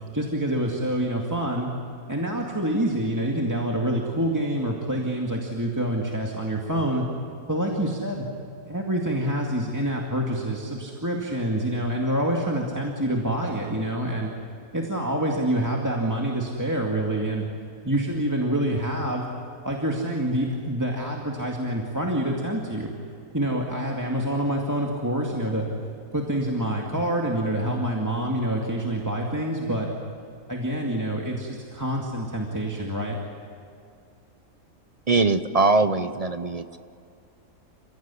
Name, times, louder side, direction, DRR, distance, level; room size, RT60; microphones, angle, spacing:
voice 1, 0.1-1.7 2.1-7.1 7.5-8.3 8.7-14.3 14.7-17.5 17.8-19.3 19.6-22.9 23.3-25.7 26.1-29.9 30.5-33.2, right 1 dB, 10° right, -1 dB, 2.2 m, -26 dB
voice 2, 35.1-36.8, right 3 dB, 40° right, 10 dB, 0.5 m, -22 dB
29.0 x 16.5 x 9.8 m, 2.5 s
omnidirectional pair, 1.6 m